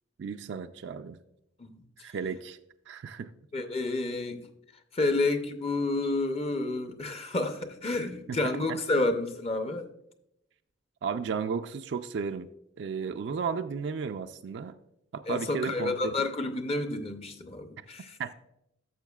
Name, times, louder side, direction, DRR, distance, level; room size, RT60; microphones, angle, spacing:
voice 1, 0.2-1.2 2.0-2.6 2.9-3.3 8.3-8.4 8.7-8.8 11.0-12.5 12.8-14.8 15.1-16.1 18.2-18.3, right 6 dB, 65° right, 8 dB, 0.3 m, -34 dB
voice 2, 3.5-4.5 4.9-9.9 15.3-18.2, left 2 dB, 30° left, 7 dB, 0.6 m, -30 dB
12.0 x 7.0 x 2.3 m, 0.80 s
head